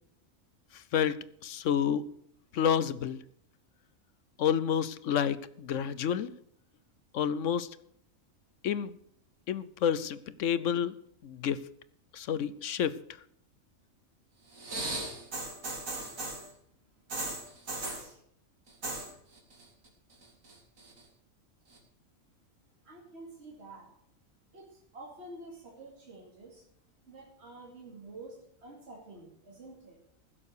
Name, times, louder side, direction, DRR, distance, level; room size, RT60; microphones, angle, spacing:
voice 1, 0.7-2.1 2.5-3.2 4.4-6.3 7.1-7.7 8.6-8.9 9.5-10.9 11.2-11.6 12.1-13.0, left 8 dB, 70° left, 16 dB, 1.0 m, -29 dB
sound 1, 14.5-16.5 17.1-18.1 18.7-19.1 19.4-19.9 20.2-21.0 21.7-21.8, right 2 dB, 75° right, 3.1 m, -37 dB
voice 2, 22.8-23.9 24.5-26.7 27.1-30.0, right 2 dB, 50° right, -1 dB, 2.7 m, -49 dB
15.5 x 7.6 x 6.6 m, 0.68 s
omnidirectional pair, 1.4 m